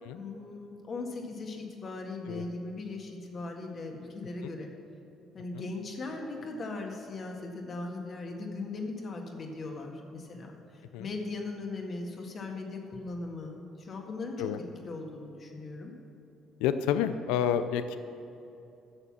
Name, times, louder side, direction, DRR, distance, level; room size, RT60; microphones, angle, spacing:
voice 1, 0.1-4.7 5.3-14.5 14.9-15.9, left 3 dB, 45° left, 1 dB, 1.8 m, -39 dB
voice 2, 16.6-18.0, left 9 dB, 90° left, 11 dB, 0.4 m, -29 dB
11.0 x 6.9 x 7.4 m, 2.8 s
supercardioid pair, 80°, 0 cm